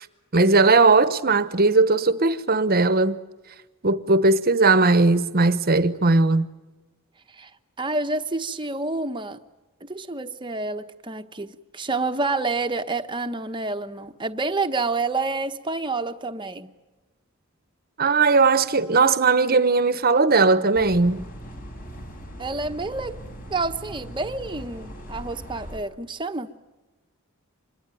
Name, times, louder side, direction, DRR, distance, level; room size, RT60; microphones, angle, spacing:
voice 1, 0.3-3.2 3.8-6.5 18.0-21.2, right 3 dB, 45° right, 1.1 m, -18 dB
voice 2, 7.8-9.4 9.8-16.7 22.4-23.1 23.5-26.5, right 3 dB, 20° right, 1.1 m, -28 dB
sound 1, 20.7-25.8, equal, 40° left, 5.2 m, -40 dB
26.0 x 21.5 x 9.1 m
head